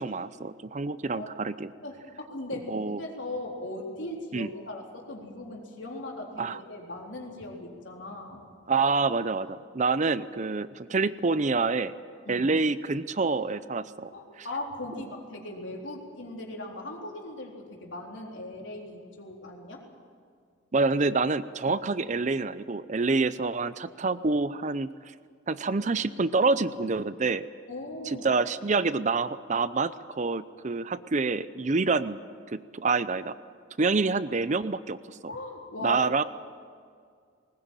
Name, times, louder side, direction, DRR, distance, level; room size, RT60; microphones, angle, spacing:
voice 1, 0.0-1.7 2.7-3.0 4.3-4.5 6.4-6.6 8.7-11.9 12.3-14.1 20.7-24.9 25.5-27.5 28.1-32.2 32.5-33.3 33.8-35.3 35.8-36.2, right 3 dB, 40° right, 15 dB, 0.6 m, -27 dB
voice 2, 1.8-8.4 12.3-12.5 14.1-19.8 21.7-21.8 27.7-28.3 35.3-36.0, left 1 dB, 75° left, 0 dB, 3.8 m, -39 dB
20.0 x 20.0 x 8.9 m, 2.1 s
head